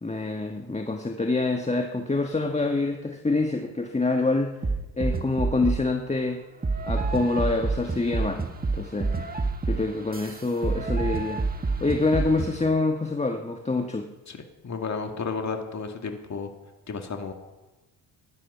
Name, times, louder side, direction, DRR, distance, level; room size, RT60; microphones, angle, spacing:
voice 1, 0.0-4.6 4.9-6.4 6.8-8.5 8.7-9.4 9.7-14.1, left 3 dB, 15° left, 4 dB, 1.4 m, -26 dB
sound 1, 4.6-5.9 6.6-12.6, right 3 dB, 20° right, 1.7 m, -28 dB
voice 2, 14.6-16.5 16.9-17.3, left 5 dB, 40° left, 4 dB, 2.2 m, -32 dB
17.0 x 11.5 x 5.7 m, 1.1 s
hypercardioid pair, 55°, 42 cm